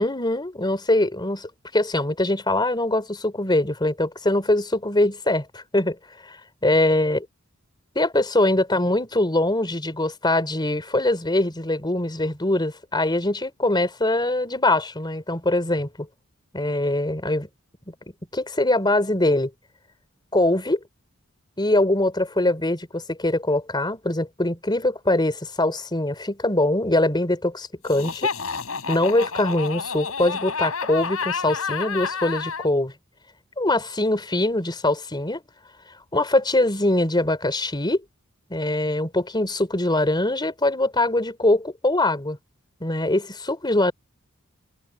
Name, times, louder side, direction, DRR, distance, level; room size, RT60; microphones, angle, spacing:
voice 1, 0.0-6.0 6.2-6.4 6.6-7.2 8.0-16.1 16.5-17.5 17.9-18.0 18.3-19.5 20.3-20.8 21.6-28.3 28.9-32.9 33.6-35.4 36.1-38.0 38.5-42.4 42.8-43.9, left 1 dB, 20° left, 3.9 m, -22 dB
Laughter, 27.8-32.7, left 5 dB, 75° left, 6.4 m, -29 dB
head